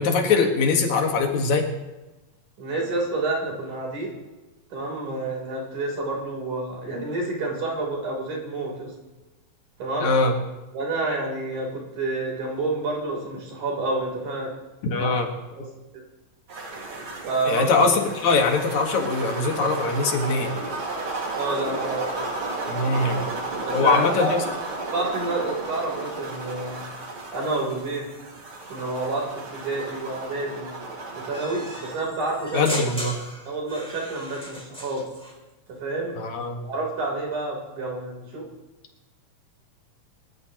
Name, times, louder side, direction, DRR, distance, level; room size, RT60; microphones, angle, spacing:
voice 1, 0.0-1.6 10.0-10.4 14.9-15.3 17.4-20.5 22.7-23.2 23.7-24.4 32.5-33.1 36.2-36.7, left 4 dB, 70° left, 3 dB, 3.0 m, -22 dB
voice 2, 2.6-4.1 4.7-8.9 9.8-10.1 10.7-14.5 14.9-15.0 15.6-15.7 15.9-16.0 17.2-17.7 21.4-22.3 23.7-24.3 24.9-26.8 27.3-28.1 28.7-30.7 31.1-32.6 33.5-35.1 35.8-36.1 36.6-38.5, right 2 dB, 90° right, -1 dB, 5.2 m, -29 dB
sound 1, 16.5-32.0, right 2 dB, 45° right, 2.8 m, -33 dB
sound 2, 31.3-35.4, equal, ahead, 2.5 m, -37 dB
25.5 x 13.0 x 3.0 m, 1.1 s
omnidirectional pair, 3.4 m